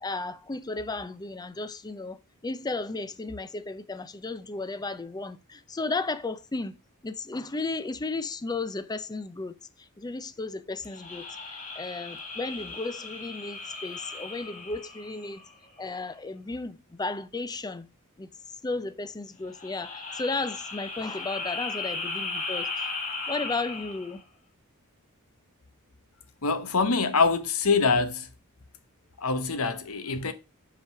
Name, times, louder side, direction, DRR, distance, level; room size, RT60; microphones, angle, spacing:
voice 1, 0.0-2.2 2.4-6.7 7.0-15.4 15.8-17.9 18.2-18.3 18.6-22.9 23.3-24.2, left 3 dB, 20° left, 0.5 m, -34 dB
sound 1, 10.9-15.7 19.5-24.2, left 3 dB, 35° left, 1.8 m, -36 dB
voice 2, 26.4-28.3 29.2-30.3, left 4 dB, 70° left, 1.0 m, -24 dB
5.4 x 5.1 x 5.8 m
head